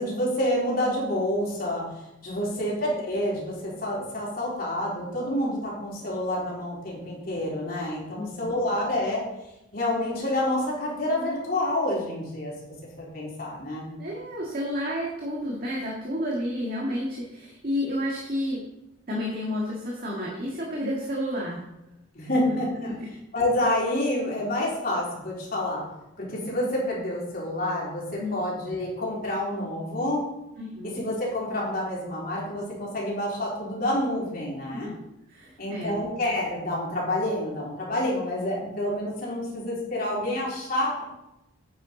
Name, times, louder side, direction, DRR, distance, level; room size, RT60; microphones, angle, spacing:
voice 1, 0.0-1.9 2.2-9.2 9.7-12.5 13.0-13.9 22.1-22.9 23.3-25.8 26.2-30.2 30.8-34.9 35.6-41.0, left 1 dB, 45° left, -4 dB, 3.6 m, -28 dB
voice 2, 8.2-8.6 14.0-18.6 19.1-21.6 22.5-22.6 22.8-23.1 28.2-28.4 30.6-31.0 34.7-35.0 35.3-36.1, left 1 dB, 45° right, -3 dB, 1.7 m, -31 dB
9.2 x 9.1 x 3.9 m, 0.90 s
head